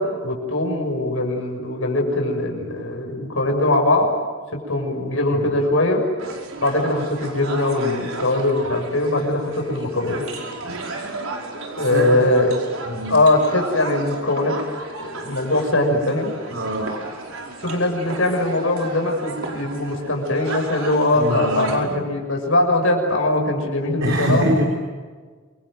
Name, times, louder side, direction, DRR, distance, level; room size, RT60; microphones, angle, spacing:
voice 1, 0.0-4.1 4.5-6.0 6.6-10.2 11.8-12.5 13.1-14.6 15.0-16.3 17.6-24.4, left 2 dB, 70° left, 2 dB, 6.3 m, -21 dB
sound 1, 6.2-21.8, right 3 dB, 80° right, 5.0 m, -34 dB
voice 2, 11.8-12.3 12.9-13.2 16.5-17.0 21.1-22.0 24.0-24.7, equal, 65° right, 1 dB, 3.8 m, -24 dB
28.5 x 23.5 x 7.7 m, 1.5 s
head